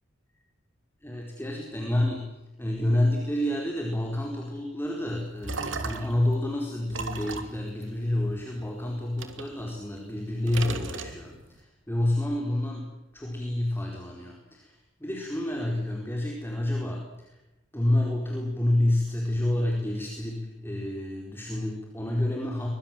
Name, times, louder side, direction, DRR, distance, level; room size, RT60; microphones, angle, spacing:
voice 1, 1.0-2.2 2.6-17.4 17.7-22.7, left 1 dB, 10° left, 0 dB, 4.5 m, -29 dB
sound 1, 5.1-6.3 6.9-8.7 9.2-10.2 10.5-11.6, right 3 dB, 70° right, 2.9 m, -36 dB
24.0 x 23.5 x 7.6 m, 0.97 s
head